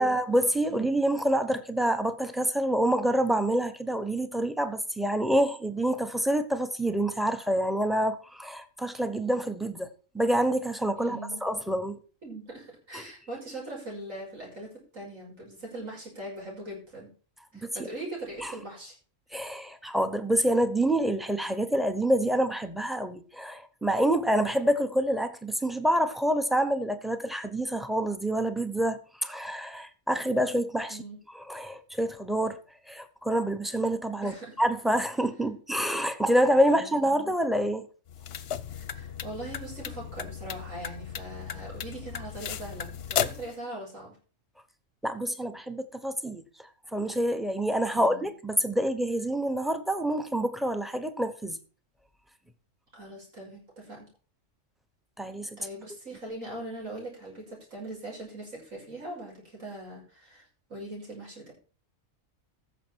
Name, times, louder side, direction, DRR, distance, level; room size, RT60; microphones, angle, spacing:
voice 1, 0.0-9.9 10.1-12.0 12.9-13.0 18.4-18.5 19.3-31.0 31.3-32.6 32.9-37.9 45.0-46.4 46.9-51.6 55.2-55.6, right 1 dB, ahead, 0.8 m, -27 dB
voice 2, 11.0-11.4 12.2-14.7 14.9-17.1 17.5-18.9 30.9-31.2 34.2-34.5 36.7-37.2 38.7-44.2 47.9-48.3 52.9-54.1 55.6-60.4 60.7-61.5, right 1 dB, 85° right, 6.5 m, -41 dB
sound 1, 38.1-43.5, left 8 dB, 60° left, 0.8 m, -35 dB
14.5 x 6.9 x 4.6 m
omnidirectional pair, 1.3 m